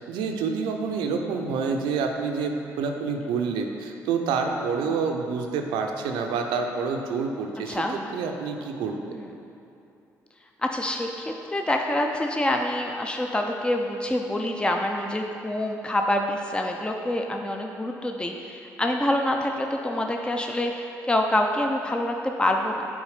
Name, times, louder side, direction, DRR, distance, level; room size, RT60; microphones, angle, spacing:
voice 1, 0.0-9.0, right 5 dB, 80° right, 3 dB, 0.6 m, -28 dB
voice 2, 10.6-22.9, left 1 dB, 10° left, 2 dB, 0.6 m, -26 dB
7.1 x 4.3 x 4.9 m, 2.8 s
hypercardioid pair, 55°, 8 cm